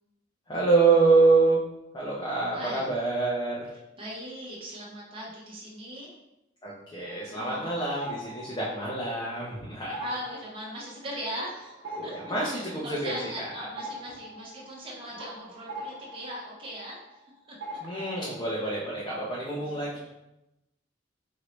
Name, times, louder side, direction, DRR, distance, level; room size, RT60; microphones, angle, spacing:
voice 1, 0.5-1.6 1.9-3.7 6.6-10.0 11.9-13.7 17.8-20.0, right 3 dB, 25° left, -6 dB, 0.7 m, -26 dB
voice 2, 2.5-2.9 4.0-6.1 7.4-8.0 10.0-12.1 12.4-17.2 17.5-17.8 18.2-18.3 19.6-19.8, equal, 30° right, -5 dB, 1.0 m, -39 dB
sound 1, 7.0-9.5 9.8-17.3 17.6-18.4, right 1 dB, 80° right, 0.9 m, -43 dB
4.6 x 2.7 x 3.1 m, 0.91 s
head